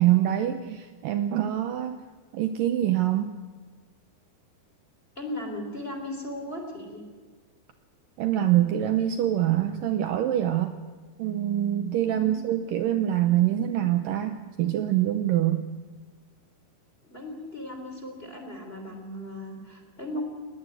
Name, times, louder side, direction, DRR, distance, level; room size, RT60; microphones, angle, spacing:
voice 1, 0.0-2.0 2.3-3.4 8.2-10.7 11.2-15.7, right 12 dB, 85° right, 8 dB, 2.0 m, -25 dB
voice 2, 5.1-7.0 12.1-12.4 17.0-20.2, left 1 dB, 15° left, 4 dB, 2.9 m, -37 dB
20.0 x 19.0 x 7.9 m, 1.4 s
omnidirectional pair, 5.0 m